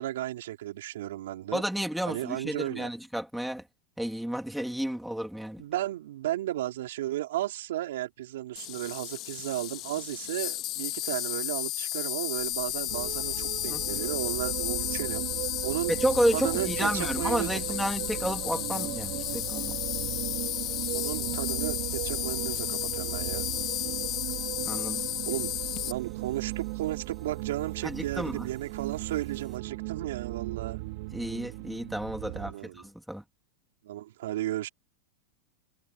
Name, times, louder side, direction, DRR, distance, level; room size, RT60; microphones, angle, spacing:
voice 1, 0.0-1.6 2.0-2.9 5.6-15.3 15.6-15.9 16.3-17.6 18.0-18.1 20.9-23.4 25.2-25.5 25.8-30.8 32.2-32.8 33.8-34.7, right 14 dB, 75° right, 3.8 m, -34 dB
voice 2, 1.5-3.6 4.0-5.6 13.7-13.8 15.9-19.8 24.7-25.0 27.8-28.5 31.1-33.2, equal, ahead, 2.5 m, -31 dB
Insect, 8.6-25.9, left 15 dB, 30° left, 2.4 m, -33 dB
sound 1, 12.4-29.6, right 7 dB, 15° right, 4.9 m, -53 dB
sound 2, 12.9-32.5, right 23 dB, 50° right, 5.5 m, -37 dB
supercardioid pair, 175°, 0 cm